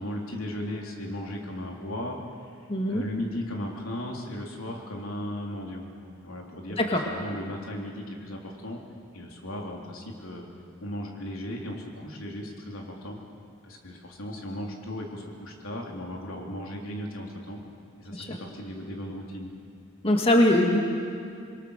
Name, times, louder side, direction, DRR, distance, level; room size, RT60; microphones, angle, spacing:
voice 1, 0.0-2.2 2.4-5.9 6.2-8.8 9.1-10.4 10.8-13.2 13.6-17.6 18.0-19.5, left 1 dB, 85° left, 0 dB, 3.6 m, -36 dB
voice 2, 2.7-3.0 6.8-7.0 18.1-18.4 20.0-20.8, left 1 dB, 30° left, 1 dB, 2.0 m, -22 dB
27.5 x 22.0 x 6.7 m, 2.3 s
head